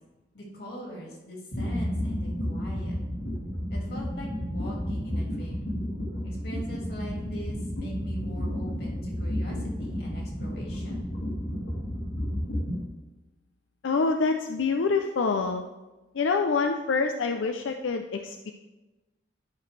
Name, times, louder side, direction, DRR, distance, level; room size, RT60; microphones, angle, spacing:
voice 1, 0.3-3.0 3.7-5.7 6.2-11.0, right 1 dB, 55° left, -2 dB, 2.3 m, -41 dB
sound 1, 1.5-12.8, equal, 70° left, 2.1 m, -32 dB
voice 2, 13.8-15.7 16.1-18.5, left 4 dB, 90° left, 5 dB, 0.5 m, -26 dB
11.5 x 6.0 x 3.3 m, 1.1 s
head